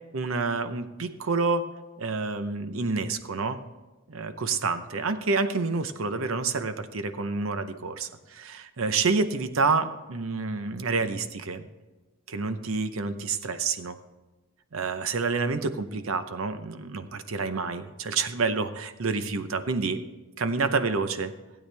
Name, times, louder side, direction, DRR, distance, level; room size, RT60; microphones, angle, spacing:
voice 1, 0.1-1.6 2.0-3.6 4.1-11.7 12.3-14.0 14.7-20.0 20.4-21.3, right 4 dB, 70° right, 10 dB, 0.7 m, -28 dB
15.5 x 8.7 x 3.4 m, 1.2 s
head